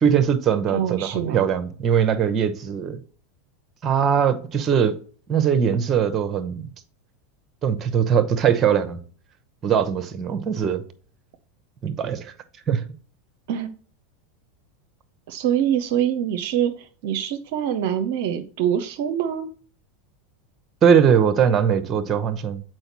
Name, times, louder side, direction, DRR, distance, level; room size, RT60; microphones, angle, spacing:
voice 1, 0.0-3.0 3.8-5.0 5.3-6.7 7.6-9.0 9.6-10.8 11.8-12.3 12.7-12.8 20.8-22.6, right 7 dB, 30° right, 0.8 m, -21 dB
voice 2, 0.7-1.5 13.5-13.7 15.3-19.5, right 9 dB, 60° right, 0.6 m, -24 dB
7.8 x 4.5 x 3.0 m
figure-of-eight pair, 85°, 0 cm